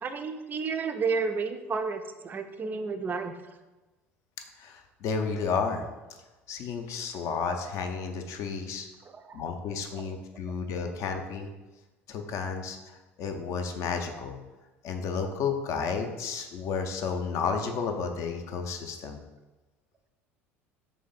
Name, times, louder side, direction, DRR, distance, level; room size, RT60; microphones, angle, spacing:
voice 1, 0.0-3.4 9.1-9.4 10.0-10.1, right 4 dB, 25° right, 7 dB, 0.4 m, -31 dB
voice 2, 4.6-5.9 6.5-8.9 9.3-11.5 12.1-14.3 14.8-19.2, left 5 dB, 45° left, 5 dB, 0.5 m, -32 dB
3.2 x 3.1 x 3.9 m, 1.1 s
figure-of-eight pair, 65°, 7 cm